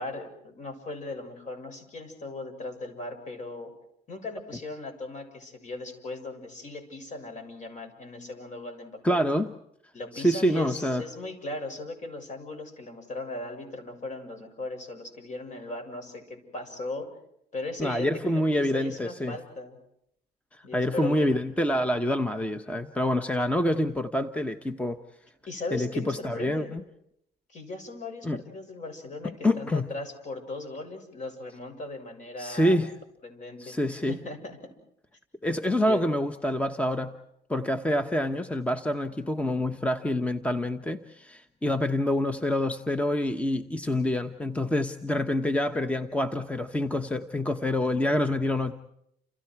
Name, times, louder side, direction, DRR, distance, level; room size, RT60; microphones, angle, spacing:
voice 1, 0.0-3.7 4.1-9.2 9.9-17.1 17.5-19.8 20.6-21.3 25.5-26.8 27.5-32.8 33.2-34.6 35.8-36.1, left 2 dB, 45° left, 7 dB, 6.9 m, -38 dB
voice 2, 9.0-9.5 10.1-11.0 17.8-19.4 20.5-25.0 25.7-26.8 28.2-28.4 29.4-29.9 32.4-32.9 33.6-34.2 35.4-37.1 37.5-48.7, left 1 dB, 10° left, 9 dB, 1.1 m, -27 dB
30.0 x 28.5 x 4.8 m, 0.75 s
cardioid pair, 110°, 17 cm